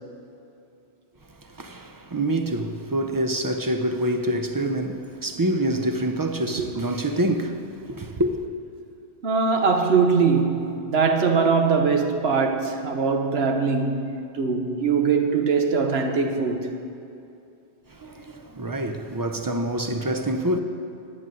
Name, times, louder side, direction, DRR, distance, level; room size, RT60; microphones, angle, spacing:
voice 1, 1.4-8.4 17.9-20.6, right 1 dB, 25° right, 0.4 m, -26 dB
voice 2, 9.2-16.7, right 5 dB, 60° right, 1.2 m, -22 dB
11.0 x 8.8 x 7.7 m
omnidirectional pair, 1.2 m